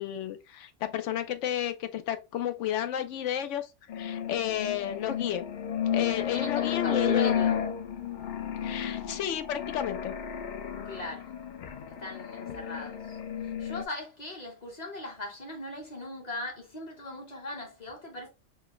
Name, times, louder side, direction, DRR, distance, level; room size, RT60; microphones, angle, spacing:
voice 1, 0.0-3.7 3.9-5.4 5.9-7.4 8.6-10.1, left 10 dB, 85° left, 0.9 m, -32 dB
sound 1, 3.9-13.8, left 8 dB, 60° left, 0.5 m, -32 dB
voice 2, 6.0-7.6 10.8-11.3 12.0-13.2 13.6-18.3, left 2 dB, 35° left, 1.2 m, -39 dB
4.5 x 2.2 x 3.0 m
omnidirectional pair, 1.2 m